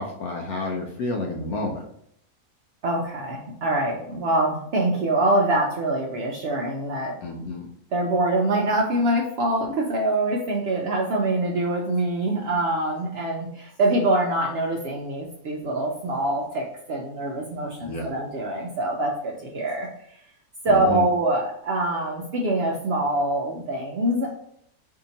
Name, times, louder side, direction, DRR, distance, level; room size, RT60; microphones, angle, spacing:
voice 1, 0.0-1.8 7.2-7.7 17.8-18.1 20.7-21.1, left 2 dB, 80° left, 1 dB, 1.1 m, -30 dB
voice 2, 2.8-7.1 7.9-19.9 20.6-24.3, right 1 dB, 75° right, -1 dB, 0.5 m, -24 dB
2.8 x 2.7 x 3.8 m, 0.70 s
omnidirectional pair, 1.6 m